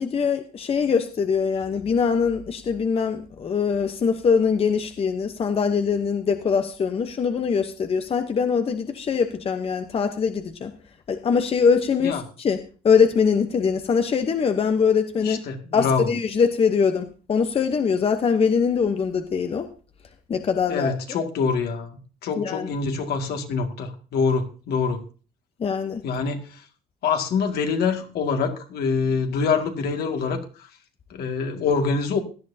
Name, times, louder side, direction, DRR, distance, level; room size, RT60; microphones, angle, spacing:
voice 1, 0.0-10.7 11.1-12.6 12.8-15.4 15.7-19.7 20.3-21.2 22.4-22.7 25.6-26.0, left 6 dB, 35° left, 7 dB, 0.9 m, -22 dB
voice 2, 15.2-16.1 20.7-25.0 26.0-26.6 27.0-30.7 31.1-32.2, left 5 dB, 70° left, 4 dB, 2.1 m, -25 dB
17.0 x 11.0 x 2.8 m, 0.36 s
cardioid pair, 110°, 17 cm